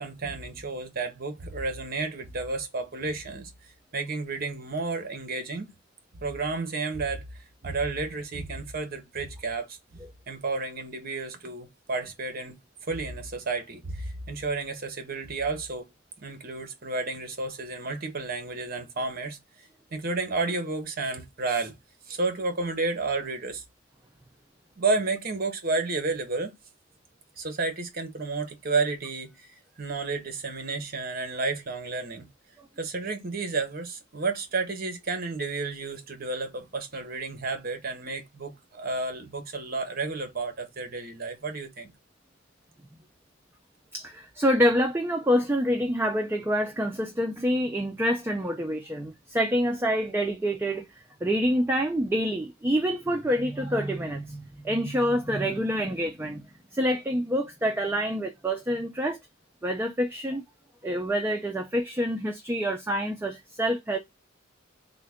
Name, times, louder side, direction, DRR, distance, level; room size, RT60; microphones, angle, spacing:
voice 1, 0.0-3.5 3.9-5.7 6.2-7.2 7.6-10.0 10.3-12.6 12.9-15.9 16.2-19.4 19.9-21.7 22.1-23.6 24.8-26.5 27.4-29.5 29.8-32.3 32.8-41.9, right 3 dB, 45° right, 0.9 m, -31 dB
voice 2, 43.9-50.9 51.2-56.4 56.7-59.2 59.6-60.4 60.8-64.0, equal, 10° right, 0.4 m, -27 dB
3.6 x 2.2 x 3.4 m
head